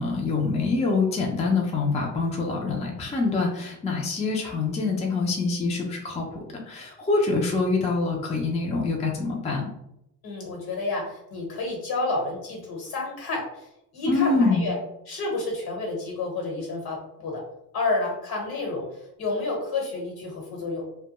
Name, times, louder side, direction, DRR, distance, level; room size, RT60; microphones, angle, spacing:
voice 1, 0.0-9.7 14.1-14.7, left 3 dB, 15° left, 0 dB, 0.4 m, -25 dB
voice 2, 10.2-14.8 15.1-17.4 17.7-20.8, left 3 dB, 60° left, 0 dB, 1.1 m, -30 dB
2.2 x 2.2 x 2.9 m, 0.82 s
cardioid pair, 100°, 41 cm